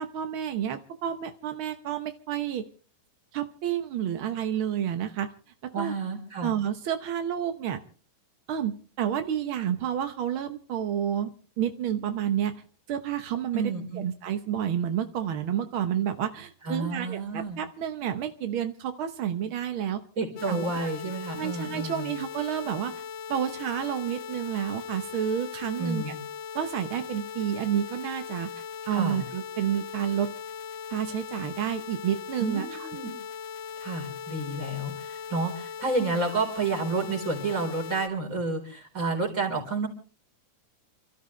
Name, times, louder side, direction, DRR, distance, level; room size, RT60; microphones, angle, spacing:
voice 1, 0.0-2.7 3.3-5.3 5.6-5.9 6.4-7.8 8.5-12.6 12.9-20.0 20.5-20.9 21.3-23.0 23.3-26.0 26.5-28.5 28.9-30.3 30.9-32.9, right 9 dB, 75° right, 8 dB, 1.2 m, -30 dB
voice 2, 5.7-6.5 13.5-14.1 16.6-17.6 20.2-22.1 25.8-26.1 28.9-29.2 32.4-33.1 33.8-39.9, right 3 dB, 25° right, 1 dB, 4.3 m, -30 dB
sound 1, 20.4-38.1, left 7 dB, 80° left, 2.9 m, -39 dB
28.5 x 13.5 x 3.2 m, 0.38 s
omnidirectional pair, 3.7 m